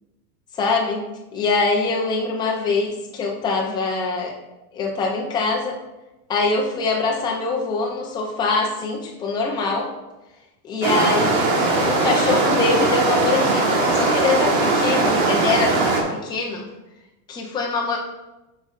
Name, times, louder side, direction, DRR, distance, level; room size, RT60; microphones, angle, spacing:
voice 1, 0.5-1.0 1.3-4.4 4.7-5.8 6.3-9.9 10.6-16.7 17.3-18.0, left 3 dB, 10° left, -1 dB, 0.4 m, -23 dB
sound 1, 10.8-16.0, right 3 dB, 55° right, 1.5 m, -20 dB
7.8 x 5.2 x 2.4 m, 1.0 s
supercardioid pair, 150°, 46 cm